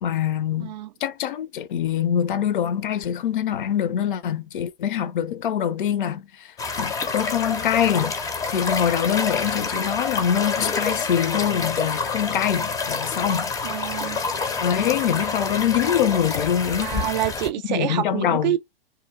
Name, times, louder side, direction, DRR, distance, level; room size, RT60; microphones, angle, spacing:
voice 1, 0.0-0.8 1.0-6.5 6.8-8.2 8.5-13.5 14.6-17.1 17.7-18.6, left 9 dB, 60° left, 0.6 m, -24 dB
voice 2, 0.6-0.9 13.6-14.2 16.8-18.6, right 13 dB, 50° right, 0.4 m, -27 dB
sound 1, 6.6-17.5, left 4 dB, 10° left, 0.5 m, -27 dB
2.8 x 2.2 x 3.5 m
figure-of-eight pair, 110°, 30 cm